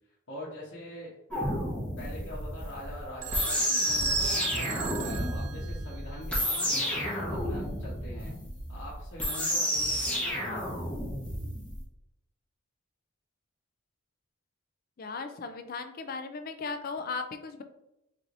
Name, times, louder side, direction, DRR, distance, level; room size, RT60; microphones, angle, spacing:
voice 1, 0.3-1.1 2.0-7.2 7.4-8.3 8.7-10.7, left 1 dB, 60° left, -8 dB, 1.0 m, -43 dB
sound 1, 1.3-11.8, equal, 5° left, 0.8 m, -31 dB
Telephone, 3.2-6.2 9.2-9.7, right 13 dB, 80° right, 0.4 m, -40 dB
voice 2, 15.0-17.6, left 4 dB, 45° left, 8 dB, 0.4 m, -37 dB
4.2 x 3.1 x 2.6 m, 0.90 s
head